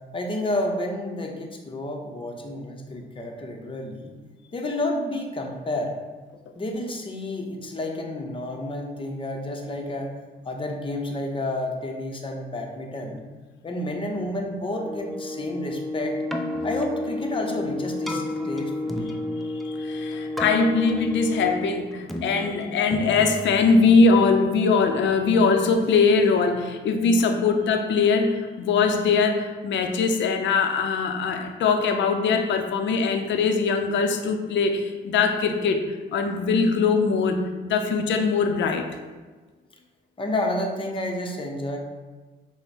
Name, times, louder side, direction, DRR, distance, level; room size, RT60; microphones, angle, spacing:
voice 1, 0.1-4.1 4.5-5.9 6.6-10.1 10.4-13.2 13.6-16.2 16.6-19.1 40.2-41.8, left 1 dB, 25° left, 2 dB, 0.7 m, -30 dB
sound 1, 14.7-21.8, left 2 dB, 20° right, 0.8 m, -31 dB
Keyboard (musical), 16.1-24.3, equal, ahead, 0.4 m, -36 dB
voice 2, 19.4-38.9, left 4 dB, 70° left, 5 dB, 0.5 m, -22 dB
5.6 x 2.1 x 4.1 m, 1.3 s
cardioid pair, 90°, 20 cm